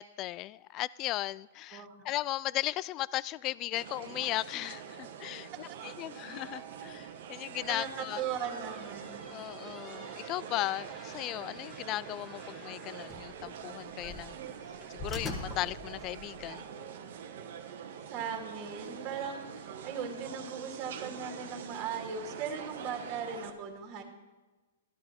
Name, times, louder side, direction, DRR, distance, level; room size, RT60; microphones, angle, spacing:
voice 1, 0.0-8.2 9.3-14.4 14.9-16.7, left 16 dB, 35° left, 0.3 m, -36 dB
voice 2, 1.7-2.1 7.7-9.3 18.1-24.0, right 6 dB, 35° right, 2.2 m, -38 dB
sound 1, 3.8-23.5, right 8 dB, 65° right, 1.2 m, -45 dB
sound 2, 7.6-16.5, left 2 dB, 15° left, 1.5 m, -46 dB
13.5 x 11.5 x 4.4 m
hypercardioid pair, 125°, 0 cm